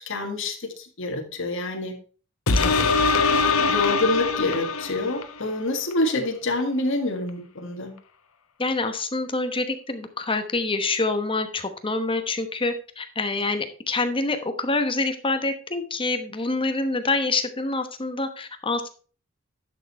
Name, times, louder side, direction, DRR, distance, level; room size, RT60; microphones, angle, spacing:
voice 1, 0.0-2.0 3.7-7.9, left 2 dB, 65° left, 3 dB, 1.9 m, -27 dB
sound 1, 2.5-5.4 5.9-6.0, left 4 dB, 85° left, 1.0 m, -22 dB
voice 2, 2.6-2.9 8.6-18.9, left 3 dB, 25° left, 8 dB, 1.0 m, -26 dB
10.5 x 6.6 x 4.2 m, 0.39 s
head